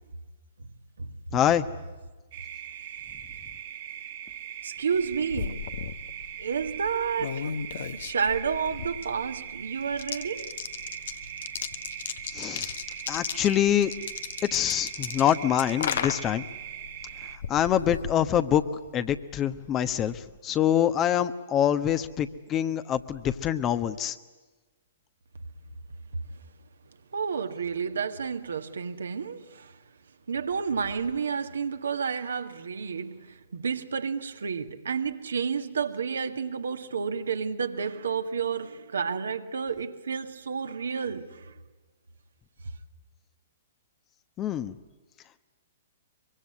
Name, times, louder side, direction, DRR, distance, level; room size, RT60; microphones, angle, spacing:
voice 1, 1.3-1.6 12.3-12.7 13.1-13.9 14.5-16.4 17.5-18.6 18.9-24.2 44.4-44.7, left 10 dB, 25° left, 1.1 m, -25 dB
sound 1, 2.3-17.4, right 10 dB, 50° right, 1.9 m, -41 dB
voice 2, 4.6-5.6 6.4-7.5 7.9-10.5 27.1-29.7 30.3-41.5, right 6 dB, 70° right, 1.7 m, -30 dB
sound 2, 4.9-18.9, left 8 dB, 55° left, 1.2 m, -37 dB
24.0 x 24.0 x 9.7 m
figure-of-eight pair, 115°, 0 cm